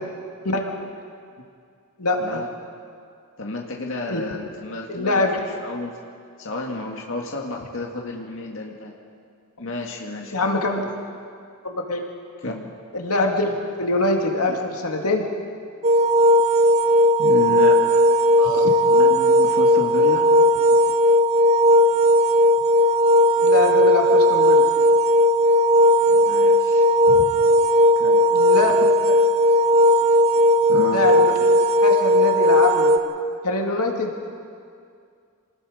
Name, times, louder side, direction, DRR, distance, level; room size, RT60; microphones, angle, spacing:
voice 1, 2.0-2.4 4.1-4.2 4.9-5.4 10.3-10.9 11.6-12.0 12.9-15.3 18.4-18.7 23.4-24.7 27.1-27.2 28.3-28.8 29.0-29.2 30.9-31.4 31.8-32.9 33.4-34.1, left 2 dB, 85° left, 2 dB, 2.2 m, -23 dB
voice 2, 3.4-5.2 5.6-5.9 6.4-8.9 9.6-10.6 12.4-12.7 17.2-18.0 18.8-20.3 26.1-26.8 28.0-28.2 30.7-31.1, left 2 dB, 60° left, 0 dB, 2.0 m, -31 dB
sound 1, 15.8-33.0, equal, 30° right, 0.8 m, -16 dB
27.5 x 19.5 x 5.1 m, 2.3 s
head